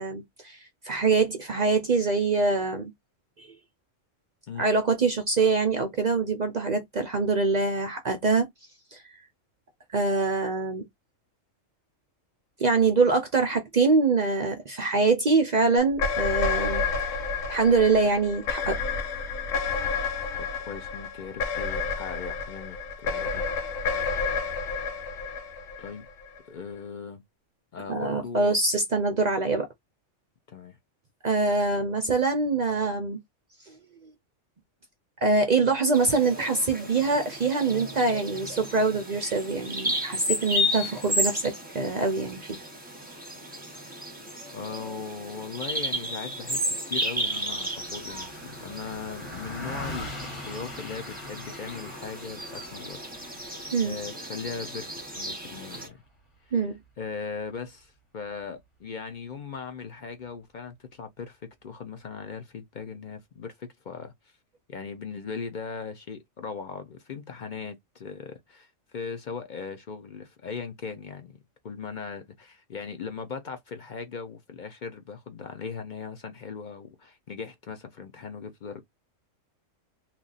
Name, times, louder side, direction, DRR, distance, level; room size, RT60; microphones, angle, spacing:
voice 1, 0.0-2.9 3.4-3.6 4.6-8.5 8.9-9.0 9.9-10.8 12.6-16.8 17.5-18.8 27.9-29.7 31.2-33.2 33.7-33.8 34.0-34.1 35.2-42.6 53.7-54.0 56.5-56.8, right 3 dB, 55° right, 0.5 m, -24 dB
sound 1, 15.9-26.4, left 5 dB, 85° left, 1.1 m, -30 dB
voice 2, 20.3-23.4 25.8-26.0 26.5-27.2 27.7-28.6 30.5-30.8 44.5-53.0 53.4-53.6 53.8-56.0 57.0-64.1 64.7-71.4 71.6-78.8, left 5 dB, 50° left, 0.6 m, -39 dB
Bird vocalization bird call bird song, 35.9-55.9, equal, 10° right, 0.7 m, -33 dB
Car passing by, 47.4-57.0, left 1 dB, 25° left, 1.1 m, -42 dB
2.9 x 2.4 x 3.9 m
omnidirectional pair, 1.3 m